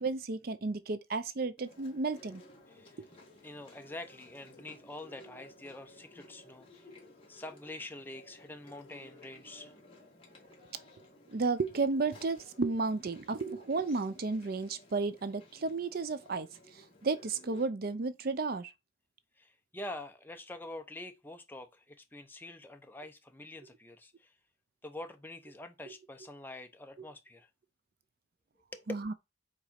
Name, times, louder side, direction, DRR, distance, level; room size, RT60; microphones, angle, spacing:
voice 1, 0.0-2.4 11.3-16.5 17.0-18.7 28.9-29.1, right 3 dB, 50° right, 0.5 m, -33 dB
Chewing mastication, 1.6-17.7, left 1 dB, 30° left, 2.1 m, -56 dB
voice 2, 2.7-3.0 3.4-6.9 7.3-9.7 19.4-24.3 24.8-27.5 28.7-28.9, left 2 dB, 10° left, 0.8 m, -46 dB
4.9 x 4.1 x 5.7 m
head